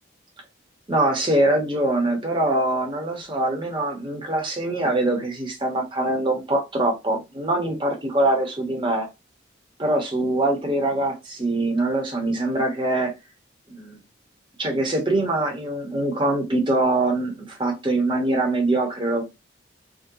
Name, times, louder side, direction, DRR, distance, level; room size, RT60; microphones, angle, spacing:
voice 1, 0.9-9.1 9.8-13.1 13.7-14.0 14.6-19.2, right 2 dB, 25° right, 0.9 m, -23 dB
3.8 x 2.2 x 2.7 m
head